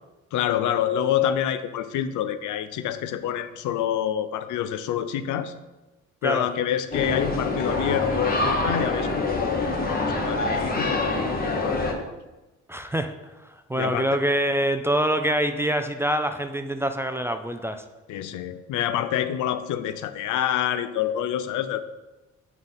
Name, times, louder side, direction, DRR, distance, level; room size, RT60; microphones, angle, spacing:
voice 1, 0.3-5.5 6.2-12.1 13.8-14.2 18.1-21.8, left 10 dB, 80° left, 12 dB, 0.5 m, -27 dB
sound 1, 6.9-11.9, left 2 dB, 30° left, 1.0 m, -26 dB
voice 2, 12.7-13.1 13.4-17.8, right 1 dB, 10° right, 8 dB, 0.3 m, -25 dB
7.5 x 3.6 x 4.0 m, 1.1 s
cardioid pair, 90°, 30 cm